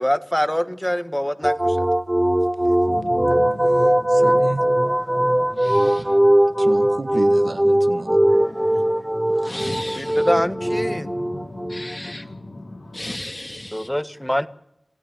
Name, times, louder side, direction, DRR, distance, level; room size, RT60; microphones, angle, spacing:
voice 1, 0.0-1.9 10.0-11.1 13.7-14.5, equal, 10° left, 1.5 m, -24 dB
sound 1, 1.4-12.1, right 1 dB, 15° right, 0.8 m, -19 dB
sound 2, 2.9-13.0, left 2 dB, 70° left, 3.5 m, -39 dB
voice 2, 4.1-4.6 4.9-5.2 6.0-6.2 6.6-8.2, right 2 dB, 75° right, 1.7 m, -32 dB
voice 3, 5.6-6.0 8.3-8.9 9.3-10.2 11.7-12.2 12.9-13.9, left 1 dB, 30° left, 2.6 m, -35 dB
27.0 x 16.0 x 9.1 m
wide cardioid pair, 45°, 0 cm